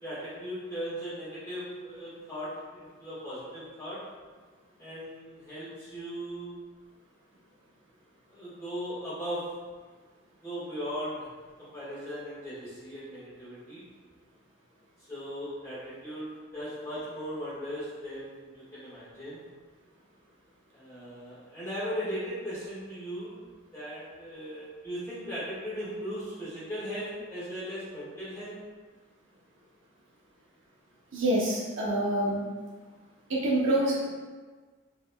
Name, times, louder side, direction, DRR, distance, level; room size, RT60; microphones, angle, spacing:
voice 1, 0.0-4.0 4.8-6.5 8.3-9.5 10.4-11.3 11.6-13.8 15.0-19.4 20.7-23.4 23.7-28.6, equal, 15° left, -11 dB, 1.4 m, -38 dB
voice 2, 31.1-32.4 33.3-34.1, right 1 dB, 70° right, -5 dB, 0.7 m, -26 dB
3.7 x 3.0 x 2.2 m, 1.4 s
head